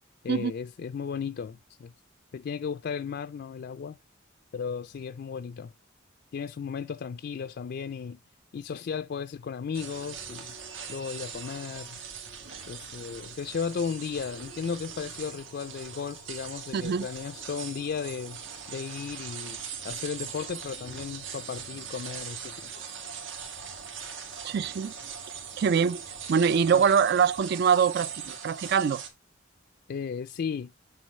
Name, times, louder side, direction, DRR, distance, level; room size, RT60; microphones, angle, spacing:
voice 1, 0.2-1.9 2.3-4.0 4.5-5.7 6.3-8.2 8.5-10.5 10.9-12.0 12.7-18.4 18.7-19.6 19.8-22.7 26.7-26.8 29.9-30.7, left 6 dB, 55° left, 0.3 m, -35 dB
sound 1, 9.7-29.1, right 7 dB, 85° right, 2.2 m, -41 dB
voice 2, 16.7-17.1 24.4-24.9 25.6-26.0 26.3-29.0, right 6 dB, 55° right, 0.3 m, -24 dB
9.2 x 3.7 x 5.3 m
head